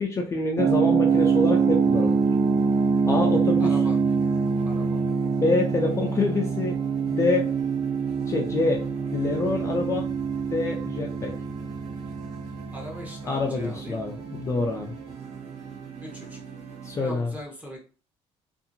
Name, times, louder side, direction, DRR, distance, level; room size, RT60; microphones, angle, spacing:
voice 1, 0.0-2.2 3.1-3.7 5.4-6.8 7.0-7.5 8.3-8.8 9.1-10.0 10.5-11.3 13.3-14.9 16.8-17.3, left 3 dB, 25° left, 1 dB, 0.4 m, -26 dB
sound 1, 0.6-15.3, right 5 dB, 45° right, 0.4 m, -25 dB
sound 2, 1.1-17.1, right 4 dB, 75° right, 0.8 m, -44 dB
voice 2, 3.6-4.0 4.6-5.0 12.7-14.2 16.0-16.4 17.0-17.8, equal, 15° right, -1 dB, 0.9 m, -40 dB
2.7 x 2.4 x 2.6 m, 0.37 s
cardioid pair, 140°, 11 cm